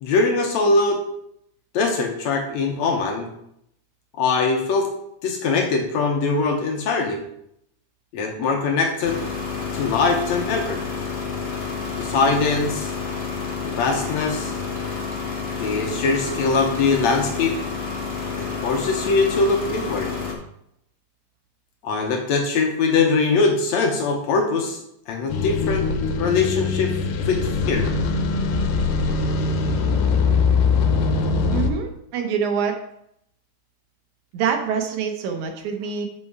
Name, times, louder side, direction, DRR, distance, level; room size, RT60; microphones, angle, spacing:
voice 1, 0.0-1.0 1.7-3.3 4.2-4.9 5.2-7.2 8.1-9.2 9.7-10.8 12.0-12.9 13.6-14.5 15.6-17.6 18.4-20.1 21.8-27.0 27.3-27.9, left 4 dB, 70° left, 2 dB, 1.9 m, -22 dB
sound 1, 9.0-20.3, left 5 dB, 25° left, 1.4 m, -29 dB
sound 2, 25.3-31.7, left 4 dB, 90° left, 2.4 m, -22 dB
voice 2, 31.5-32.8 34.3-36.1, right 7 dB, 75° right, 5 dB, 2.0 m, -25 dB
7.5 x 5.5 x 4.8 m, 0.76 s
omnidirectional pair, 3.7 m